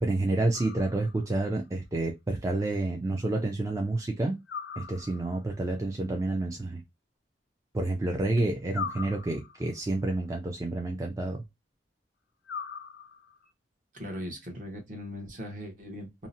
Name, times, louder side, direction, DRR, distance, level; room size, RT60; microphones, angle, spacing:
voice 1, 0.0-4.4 4.8-6.8 7.7-11.4, right 2 dB, 20° right, 0.3 m, -29 dB
sound 1, 0.5-1.4 4.5-5.5 8.7-9.8 12.4-13.4, left 6 dB, 65° left, 0.4 m, -40 dB
voice 2, 13.9-16.3, equal, 45° right, 0.9 m, -39 dB
2.7 x 2.0 x 2.5 m
head